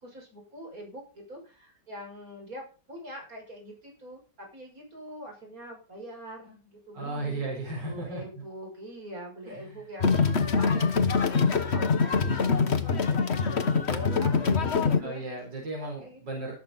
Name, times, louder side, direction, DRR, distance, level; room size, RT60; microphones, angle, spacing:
voice 1, 0.0-7.5 7.8-15.4 15.8-16.2, equal, 50° right, 0 dB, 6.8 m, -43 dB
voice 2, 6.9-8.4 9.5-9.8 15.0-16.5, right 2 dB, 90° right, 0 dB, 5.2 m, -35 dB
sound 1, 10.0-15.0, left 5 dB, 40° left, 1.4 m, -24 dB
19.0 x 8.2 x 4.1 m, 0.33 s
omnidirectional pair, 1.9 m